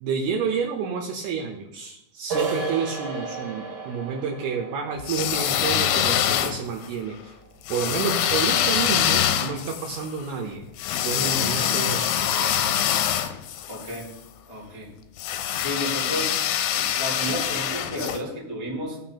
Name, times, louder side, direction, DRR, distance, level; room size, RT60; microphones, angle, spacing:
voice 1, 0.0-7.4 7.7-10.7 11.0-12.2, right 5 dB, 80° right, 0 dB, 2.6 m, -29 dB
sound 1, 2.3-7.8, right 5 dB, 45° right, 2.5 m, -34 dB
sound 2, 5.0-6.9 7.7-14.0 15.2-18.2, left 10 dB, 80° left, 2.5 m, -24 dB
voice 2, 13.7-14.1 14.5-14.9 15.5-16.4 16.7-19.0, equal, 20° right, -7 dB, 0.8 m, -32 dB
16.0 x 6.0 x 2.9 m, 0.90 s
omnidirectional pair, 4.8 m